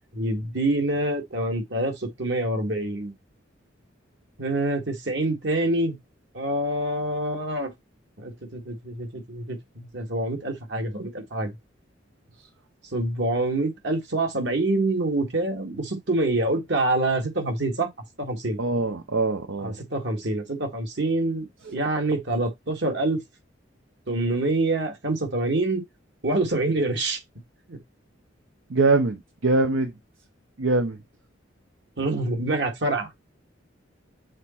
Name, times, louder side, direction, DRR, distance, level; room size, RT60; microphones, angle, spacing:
voice 1, 0.1-3.1 4.4-6.0 6.3-7.7 8.2-11.5 12.9-17.9 18.2-18.6 19.6-21.5 21.7-23.2 24.1-25.8 26.2-27.2 27.7-27.8 32.0-33.1, right 2 dB, 65° right, 1.9 m, -26 dB
voice 2, 18.6-19.8 21.7-21.8 28.7-29.9 30.6-31.0, right 3 dB, 80° right, 0.8 m, -23 dB
6.6 x 4.2 x 4.4 m
head